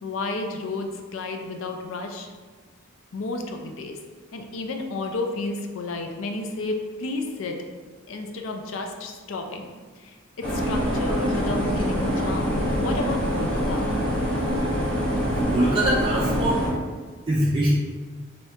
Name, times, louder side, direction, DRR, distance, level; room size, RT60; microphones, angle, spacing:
voice 1, 0.0-2.3 3.1-4.0 4.3-7.6 8.1-14.0, left 3 dB, 75° left, 4 dB, 0.4 m, -32 dB
sound 1, 10.4-16.7, equal, 20° left, 1.1 m, -25 dB
voice 2, 15.3-16.7 17.3-17.7, right 1 dB, 25° right, -6 dB, 0.3 m, -23 dB
2.7 x 2.7 x 3.3 m, 1.4 s
head